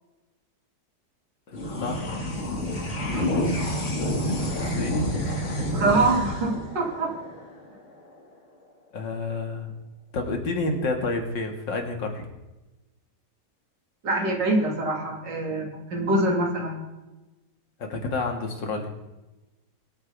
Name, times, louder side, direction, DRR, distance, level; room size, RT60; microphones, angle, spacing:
voice 1, 1.5-2.1 3.7-5.7 8.9-9.7 10.1-12.2 17.8-18.9, left 3 dB, 90° left, 3 dB, 2.7 m, -30 dB
sound 1, 1.5-8.2, left 1 dB, 40° left, 2.4 m, -29 dB
voice 2, 5.7-7.1 14.0-16.8, right 2 dB, 75° right, 0 dB, 3.3 m, -24 dB
23.0 x 9.0 x 3.5 m, 1.1 s
omnidirectional pair, 1.9 m